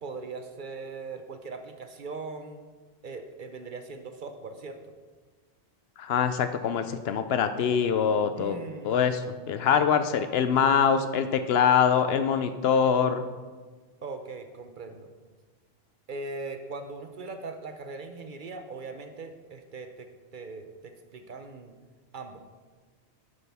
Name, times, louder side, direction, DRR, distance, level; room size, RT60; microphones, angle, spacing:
voice 1, 0.0-2.7 3.0-4.9 8.4-9.5 14.0-15.1 16.1-21.8 22.1-22.4, right 3 dB, 55° right, 7 dB, 0.7 m, -40 dB
voice 2, 6.0-8.6 8.8-13.3, left 7 dB, 70° left, 10 dB, 0.8 m, -24 dB
10.0 x 8.2 x 3.5 m, 1.4 s
omnidirectional pair, 1.1 m